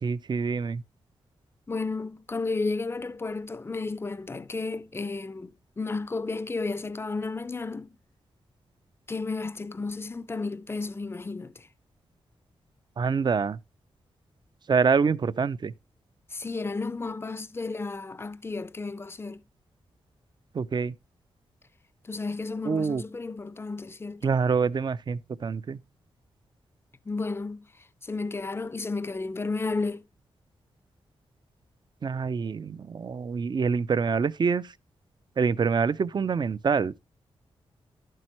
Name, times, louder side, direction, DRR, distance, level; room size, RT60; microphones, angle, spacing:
voice 1, 0.0-0.8 13.0-13.6 14.7-15.7 20.5-20.9 22.6-23.0 24.2-25.8 32.0-34.7 35.4-36.9, right 5 dB, 45° right, 0.5 m, -26 dB
voice 2, 1.7-8.0 9.1-11.7 16.3-19.4 22.0-24.3 27.1-27.7 28.0-30.0, left 3 dB, 25° left, 0.5 m, -33 dB
11.5 x 7.6 x 3.0 m
cardioid pair, 75°, 10 cm